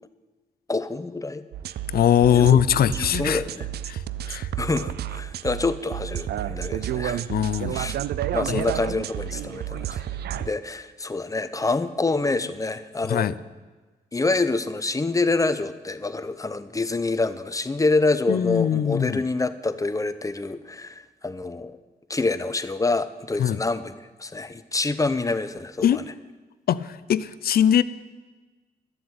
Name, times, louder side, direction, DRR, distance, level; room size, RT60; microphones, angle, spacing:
voice 1, 0.7-1.4 2.3-2.6 2.9-3.7 4.2-7.3 7.7-7.9 8.3-10.1 10.4-13.3 14.1-21.8 22.1-23.9 24.2-26.0, left 3 dB, 20° left, 12 dB, 0.8 m, -26 dB
sound 1, 1.5-10.5, right 11 dB, 85° right, 0.4 m, -31 dB
voice 2, 1.9-3.4 3.9-4.0 4.3-4.5 7.3-7.8 8.5-8.6 13.1-13.3 18.3-19.2 23.4-23.6 25.8-26.0 26.7-27.8, left 10 dB, 70° left, 16 dB, 0.5 m, -21 dB
11.5 x 7.6 x 8.8 m, 1.3 s
cardioid pair, 80°, 16 cm